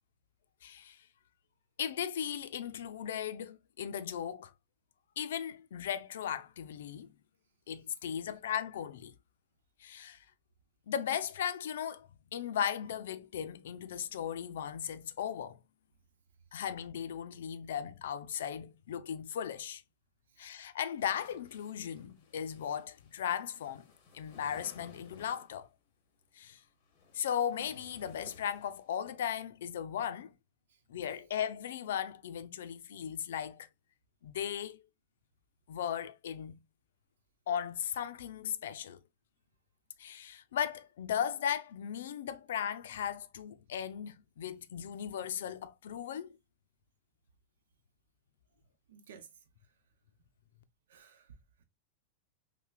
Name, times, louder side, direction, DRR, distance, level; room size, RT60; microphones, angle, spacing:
voice 1, 0.6-1.1 1.8-4.5 5.2-7.1 7.7-9.1 9.8-10.3 10.9-15.6 16.5-19.8 20.4-23.8 24.1-25.7 26.3-26.6 27.1-30.3 30.9-33.7 34.2-34.8 35.7-36.6 37.5-39.0 40.0-46.3, left 9 dB, 75° left, 0.5 m, -37 dB
sound 1, 21.0-25.7 26.7-29.1, left 4 dB, 35° left, 1.2 m, -58 dB
voice 2, 48.9-49.4 50.9-51.6, right 7 dB, 80° right, 0.7 m, -56 dB
5.6 x 2.2 x 2.3 m
supercardioid pair, 170°, 0 cm